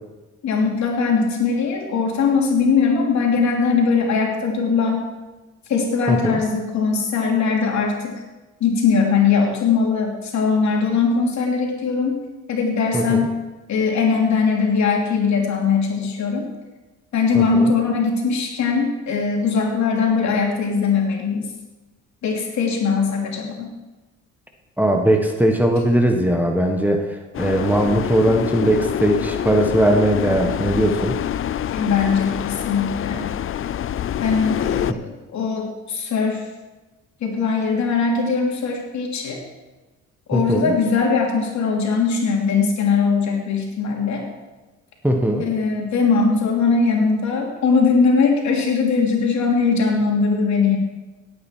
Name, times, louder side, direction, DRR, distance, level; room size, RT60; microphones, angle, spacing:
voice 1, 0.4-5.1 5.7-8.2 8.6-12.2 12.5-13.4 13.7-16.4 17.1-21.5 22.2-23.7 31.7-33.3 34.2-36.4 37.2-39.4 40.3-44.3 45.4-50.8, left 5 dB, 65° left, 1 dB, 2.9 m, -20 dB
voice 2, 6.1-6.4 12.9-13.3 17.3-17.7 24.8-27.1 27.4-31.2 34.9-35.0 40.3-40.7 45.0-45.4, right 1 dB, 5° right, 3 dB, 1.4 m, -19 dB
sound 1, 27.3-34.9, left 10 dB, 45° left, 0.5 m, -26 dB
17.5 x 8.9 x 4.6 m, 1.1 s
cardioid pair, 90°, 30 cm